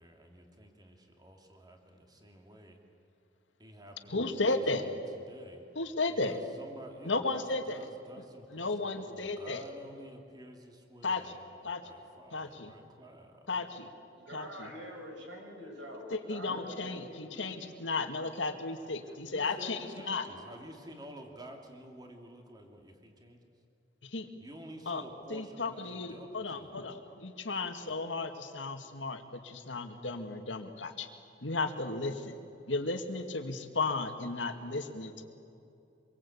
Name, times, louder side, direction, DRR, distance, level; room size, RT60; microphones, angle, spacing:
voice 1, 0.0-2.8 3.6-4.5 4.7-5.0 5.3-5.6 6.1-13.5 19.3-23.5 24.4-26.8, right 1 dB, 20° right, 3 dB, 2.5 m, -51 dB
voice 2, 4.1-4.8 5.8-6.4 7.0-7.8 8.5-9.6 11.0-11.2 11.6-11.8 12.3-12.7 13.5-13.9 14.3-14.7 16.1-20.3 24.0-24.3 24.9-25.0 25.3-31.1 31.4-32.4 32.7-35.2, left 3 dB, 90° left, 6 dB, 2.2 m, -34 dB
voice 3, 14.1-17.5 20.0-20.3, equal, 85° right, 0 dB, 7.9 m, -46 dB
26.5 x 23.0 x 8.7 m, 2.7 s
head